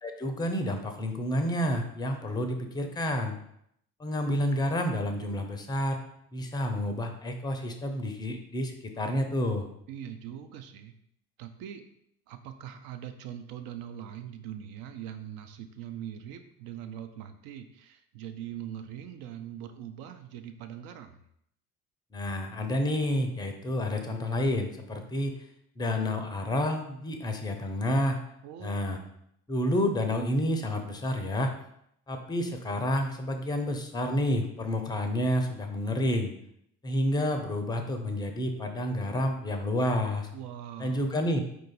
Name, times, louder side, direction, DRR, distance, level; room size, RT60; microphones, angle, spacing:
voice 1, 0.0-3.4 4.0-6.0 6.3-9.7 22.1-25.3 25.8-28.2 28.6-29.0 29.5-31.5 32.1-36.3 36.8-40.3 40.8-41.4, left 1 dB, 10° left, 6 dB, 0.5 m, -29 dB
voice 2, 9.9-10.9 11.4-11.8 12.3-21.2 28.4-29.1 40.3-41.1, right 10 dB, 50° right, 7 dB, 0.5 m, -42 dB
4.5 x 2.5 x 4.0 m, 0.72 s
figure-of-eight pair, 55°, 44 cm